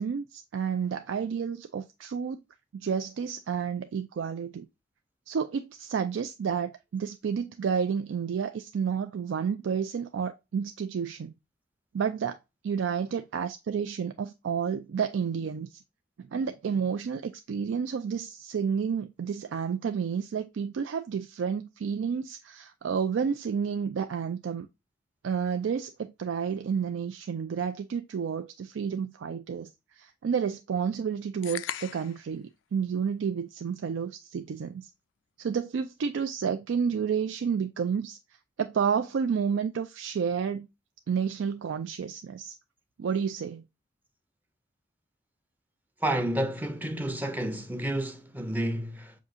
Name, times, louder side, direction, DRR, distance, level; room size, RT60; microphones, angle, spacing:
voice 1, 0.0-2.4 2.7-4.7 5.3-11.3 11.9-12.4 12.6-15.8 16.2-24.7 25.2-25.9 26.2-34.9 35.4-38.2 38.6-40.7 41.1-42.6 43.0-43.6, right 6 dB, 90° right, 0.4 m, -30 dB
sound 1, 31.4-32.3, left 11 dB, 80° left, 0.3 m, -37 dB
voice 2, 46.0-49.1, right 1 dB, 10° right, 0.5 m, -30 dB
6.1 x 2.7 x 2.4 m
head